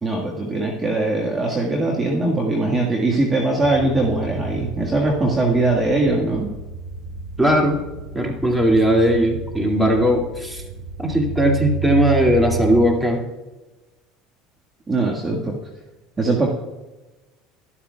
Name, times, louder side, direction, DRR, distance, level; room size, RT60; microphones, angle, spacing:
voice 1, 0.0-6.5 14.9-15.6 16.2-16.5, right 2 dB, 25° right, -1 dB, 1.6 m, -21 dB
sound 1, 3.6-12.9, right 5 dB, 75° right, 2.2 m, -32 dB
voice 2, 7.4-7.8 8.1-10.6 11.0-13.2, equal, 5° right, 1 dB, 2.3 m, -18 dB
12.5 x 12.5 x 2.3 m, 1.1 s
supercardioid pair, 90°, 0 cm